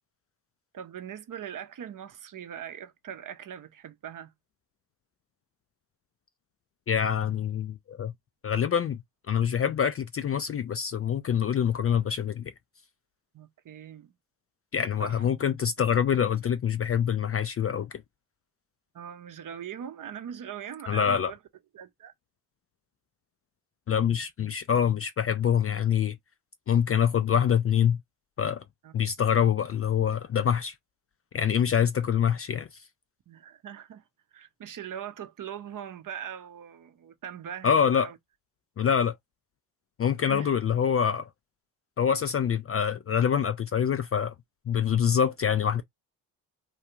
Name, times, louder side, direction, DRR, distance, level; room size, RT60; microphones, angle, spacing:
voice 1, 0.7-4.3 13.3-14.1 15.0-15.3 18.9-21.4 21.7-22.1 28.8-28.9 31.6-31.9 33.3-34.0 34.3-38.2 40.3-40.5, right 9 dB, 45° right, 0.7 m, -41 dB
voice 2, 6.9-8.1 8.4-9.0 9.3-12.5 14.7-17.9 20.9-21.3 23.9-26.2 26.7-28.0 28.4-28.6 28.9-30.7 31.3-32.7 37.6-38.1 38.8-39.2 40.0-41.2 42.0-44.3 44.7-45.8, left 8 dB, 30° left, 0.4 m, -25 dB
2.4 x 2.3 x 2.9 m
hypercardioid pair, 45°, 47 cm